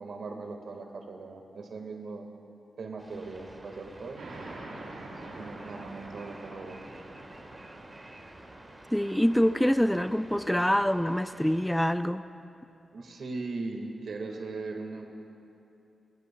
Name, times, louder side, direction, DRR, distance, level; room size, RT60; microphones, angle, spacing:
voice 1, 0.0-2.3 2.8-4.3 5.4-6.8 12.9-15.1, right 3 dB, 70° right, 3 dB, 1.6 m, -39 dB
sound 1, 3.0-11.8, right 1 dB, 25° right, 1.4 m, -50 dB
sound 2, 4.2-11.3, right 2 dB, 85° right, 3.5 m, -47 dB
voice 2, 8.9-12.2, equal, 5° left, 11 dB, 0.4 m, -25 dB
24.5 x 16.5 x 2.2 m, 2.8 s
cardioid pair, 75°, 0 cm